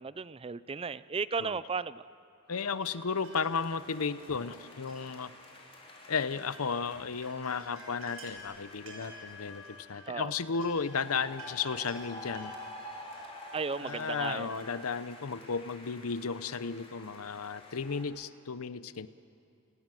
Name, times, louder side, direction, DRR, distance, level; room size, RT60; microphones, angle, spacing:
voice 1, 0.0-2.1 10.1-10.3 13.5-14.6, right 5 dB, 25° right, 17 dB, 0.5 m, -35 dB
voice 2, 2.5-5.3 6.1-12.5 13.8-19.1, left 5 dB, 90° left, 14 dB, 0.8 m, -34 dB
sound 1, 2.5-14.8, equal, 80° right, 5.7 m, -52 dB
sound 2, 2.6-10.0 10.7-18.0, left 1 dB, 30° left, 4.1 m, -49 dB
30.0 x 18.0 x 7.7 m, 2.6 s
head